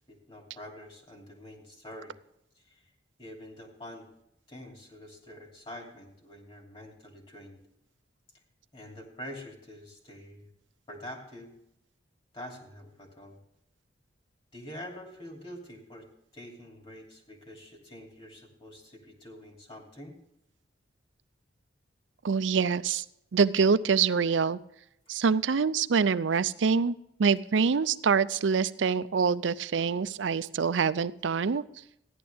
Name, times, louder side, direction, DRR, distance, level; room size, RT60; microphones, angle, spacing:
voice 1, 0.0-2.2 2.6-2.8 3.2-4.1 4.5-7.6 8.7-10.5 10.9-11.5 12.3-13.4 14.5-16.1 16.3-20.2, left 1 dB, 30° left, 0 dB, 2.8 m, -46 dB
voice 2, 22.2-23.0 23.3-24.6 25.1-26.9 27.2-31.6, right 5 dB, 70° right, 15 dB, 0.5 m, -25 dB
15.0 x 11.0 x 3.5 m, 0.80 s
head